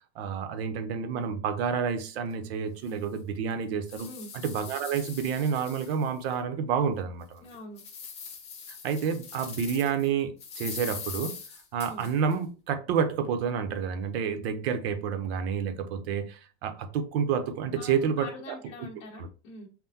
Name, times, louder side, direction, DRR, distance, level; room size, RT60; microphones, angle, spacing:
voice 1, 0.2-4.1 4.4-7.4 8.8-11.4 11.7-18.6 19.2-19.3, right 7 dB, 60° right, 0.8 m, -29 dB
sound 1, 2.3-2.4 2.9-3.0 3.5-6.3 6.8-6.9 7.4-10.1 10.4-12.3, left 6 dB, 20° left, 0.5 m, -42 dB
voice 2, 7.4-7.8 11.8-12.1 17.8-19.7, left 2 dB, 45° left, 1.3 m, -44 dB
5.7 x 2.1 x 2.7 m
supercardioid pair, 180°, 35 cm